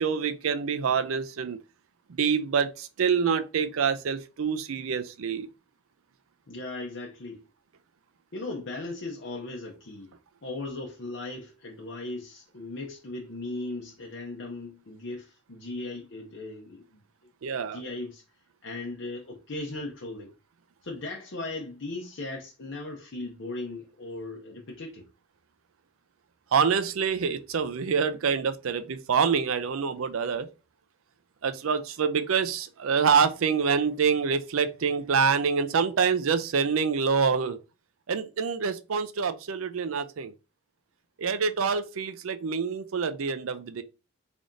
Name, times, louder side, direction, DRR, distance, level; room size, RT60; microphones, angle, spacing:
voice 1, 0.0-1.6 2.1-5.5 17.4-17.8 26.5-30.5 31.4-37.6 38.1-40.3 41.2-43.8, right 6 dB, 85° right, 0.5 m, -26 dB
voice 2, 6.5-7.4 8.3-10.1 10.4-17.0 17.7-18.2 18.6-20.3 20.8-25.1, left 2 dB, 65° left, 0.7 m, -37 dB
3.6 x 3.5 x 2.6 m
head